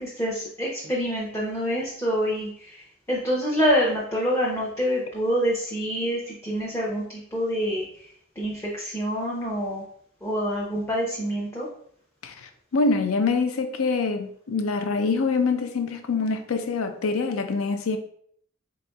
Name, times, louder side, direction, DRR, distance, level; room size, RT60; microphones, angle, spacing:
voice 1, 0.0-7.8 8.4-9.8 10.2-11.7, equal, 15° left, -5 dB, 0.6 m, -26 dB
voice 2, 12.2-18.0, left 4 dB, 85° left, 7 dB, 0.5 m, -25 dB
4.1 x 3.8 x 2.2 m, 0.63 s
head